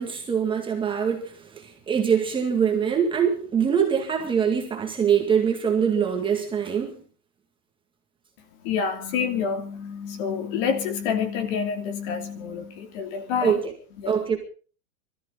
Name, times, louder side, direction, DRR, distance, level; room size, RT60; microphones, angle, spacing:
voice 1, 0.0-7.0 13.4-13.6 14.1-14.4, right 7 dB, 10° right, 2.0 m, -23 dB
voice 2, 8.6-13.6 14.0-14.2, left 6 dB, 40° left, 2.9 m, -28 dB
24.5 x 14.0 x 3.9 m
supercardioid pair, 165°, 44 cm